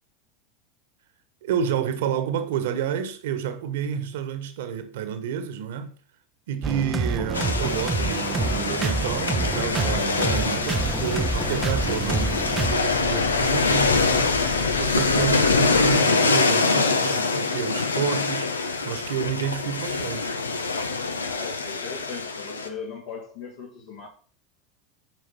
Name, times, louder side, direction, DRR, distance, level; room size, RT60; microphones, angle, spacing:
voice 1, 1.4-5.9 6.5-12.4 12.7-14.4 14.8-20.3, right 8 dB, 65° right, 1.4 m, -30 dB
sound 1, 6.6-12.7, right 4 dB, 20° right, 0.6 m, -27 dB
sound 2, 7.3-22.7, left 4 dB, 85° left, 0.9 m, -24 dB
sound 3, 10.7-16.0, left 5 dB, 30° left, 1.5 m, -33 dB
voice 2, 21.2-24.1, left 5 dB, 65° left, 2.8 m, -38 dB
9.4 x 5.3 x 5.7 m
figure-of-eight pair, 85°, 0 cm